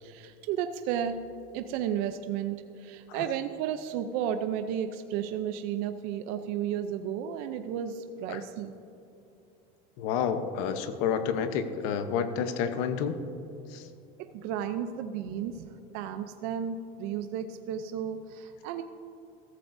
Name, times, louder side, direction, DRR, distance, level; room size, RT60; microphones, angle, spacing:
voice 1, 0.0-1.2 1.5-8.7 14.2-18.8, right 9 dB, 60° right, 8 dB, 0.5 m, -33 dB
voice 2, 10.0-13.2 13.7-13.8, left 7 dB, 70° left, 9 dB, 0.9 m, -29 dB
14.5 x 14.0 x 2.6 m, 2.7 s
cardioid pair, 170°, 17 cm